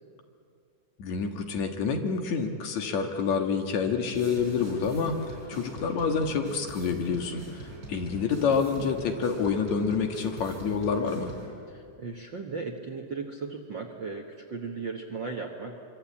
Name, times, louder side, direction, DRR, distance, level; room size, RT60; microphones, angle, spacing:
voice 1, 1.0-5.2 5.5-11.3, left 5 dB, 60° left, 4 dB, 2.7 m, -28 dB
sound 1, 4.1-11.5, right 1 dB, 30° right, 5.1 m, -43 dB
voice 2, 11.7-15.8, right 4 dB, 50° right, 2 dB, 1.4 m, -36 dB
25.0 x 24.5 x 8.6 m, 2.4 s
omnidirectional pair, 3.8 m